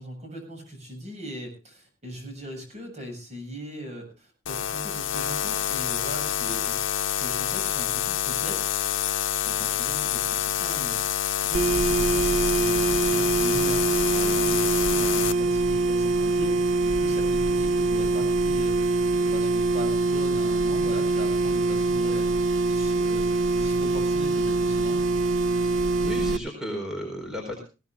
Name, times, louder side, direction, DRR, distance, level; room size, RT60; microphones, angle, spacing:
voice 1, 0.0-8.7 9.4-13.9 14.1-22.3 22.7-25.0, equal, 35° right, 4 dB, 7.5 m, -39 dB
sound 1, 4.5-15.3, left 10 dB, 80° left, 0.8 m, -27 dB
sound 2, 11.5-26.4, right 3 dB, 85° right, 0.9 m, -24 dB
voice 2, 25.6-27.6, equal, 5° right, 1 dB, 4.5 m, -34 dB
20.0 x 18.0 x 2.4 m, 0.32 s
head